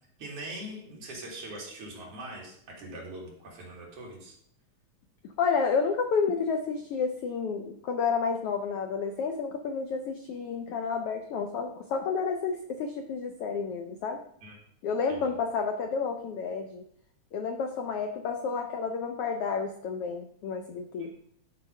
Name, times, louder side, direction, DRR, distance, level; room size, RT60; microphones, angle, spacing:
voice 1, 0.2-4.3 14.4-14.6 15.1-15.2 21.0-21.1, right 1 dB, 55° right, -3 dB, 3.2 m, -42 dB
voice 2, 5.4-14.2 14.8-16.8 17.3-21.1, left 5 dB, 75° left, 5 dB, 1.3 m, -30 dB
11.0 x 4.2 x 5.4 m, 0.68 s
omnidirectional pair, 3.3 m